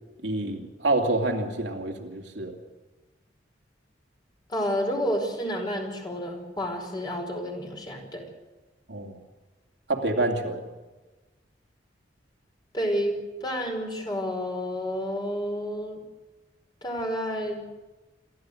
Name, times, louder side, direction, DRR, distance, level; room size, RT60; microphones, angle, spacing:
voice 1, 0.2-2.6 8.9-9.2 9.9-10.6, right 2 dB, 75° right, 1 dB, 2.8 m, -27 dB
voice 2, 4.5-8.2 12.7-16.0 16.8-17.6, equal, 25° left, 2 dB, 5.0 m, -30 dB
28.0 x 13.5 x 8.1 m, 1.2 s
head